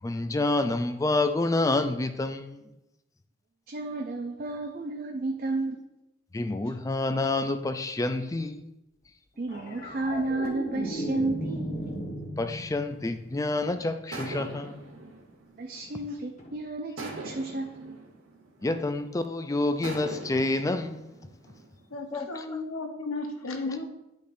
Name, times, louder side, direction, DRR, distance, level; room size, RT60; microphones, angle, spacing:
voice 1, 0.0-2.7 6.3-8.7 12.4-14.9 18.6-21.1 22.1-22.6 23.7-23.8, left 2 dB, 15° left, 9 dB, 0.3 m, -28 dB
voice 2, 3.7-5.8 9.4-11.8 15.6-18.0, right 2 dB, 45° right, 2 dB, 0.5 m, -32 dB
sound 1, 9.5-14.0 16.4-16.6, equal, 35° left, 1.1 m, -36 dB
sound 2, 12.9-13.5 14.1-16.4 17.0-19.2 19.8-22.1, right 2 dB, 70° right, 1.2 m, -43 dB
voice 3, 21.9-23.9, left 3 dB, 90° left, 3 dB, 1.0 m, -34 dB
9.9 x 5.2 x 2.6 m, 0.93 s
head